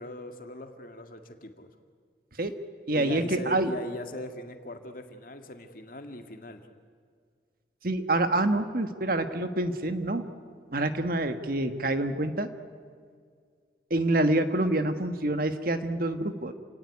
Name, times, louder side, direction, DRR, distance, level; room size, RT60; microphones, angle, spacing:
voice 1, 0.0-1.7 2.9-6.6, left 1 dB, 50° left, 6 dB, 2.0 m, -40 dB
voice 2, 2.9-3.7 7.8-10.3 10.7-12.5 13.9-16.5, right 1 dB, 50° right, 9 dB, 1.4 m, -27 dB
28.5 x 18.0 x 9.8 m, 2.1 s
head